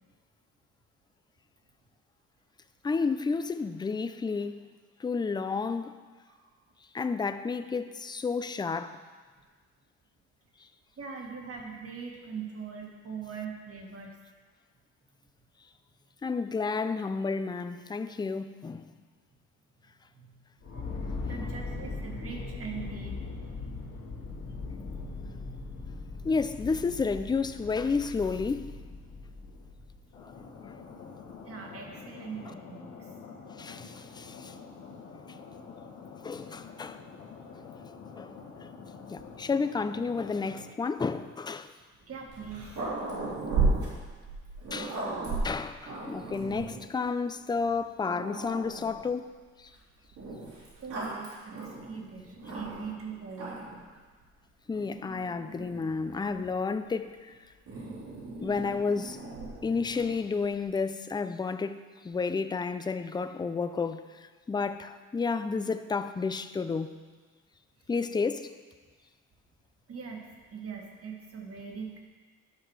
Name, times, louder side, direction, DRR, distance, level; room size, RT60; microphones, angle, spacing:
voice 1, 2.8-4.7 5.0-6.0 6.9-9.0 16.2-18.9 26.2-28.7 30.2-30.8 33.6-34.5 36.2-37.0 37.6-37.7 38.2-38.3 38.6-38.7 39.1-41.7 44.7-45.0 45.4-49.3 49.6-49.7 54.7-57.3 58.4-59.2 59.6-66.9 67.9-68.5, left 4 dB, 15° left, 0.4 m, -31 dB
voice 2, 11.0-14.2 20.1-23.2 31.5-33.1 42.0-42.9 50.8-54.0 59.5-59.6 69.9-72.0, right 6 dB, 50° right, 1.8 m, -42 dB
sound 1, 20.6-30.2, left 3 dB, 65° left, 1.9 m, -39 dB
sound 2, 30.1-40.6, left 5 dB, 80° left, 1.5 m, -47 dB
Growling, 42.3-46.9 47.6-47.7 48.0-49.1 50.2-53.0 53.3-53.8 54.7-56.5 57.7-60.2, right 3 dB, 75° right, 3.0 m, -35 dB
10.5 x 5.8 x 4.7 m
cardioid pair, 90°, 30 cm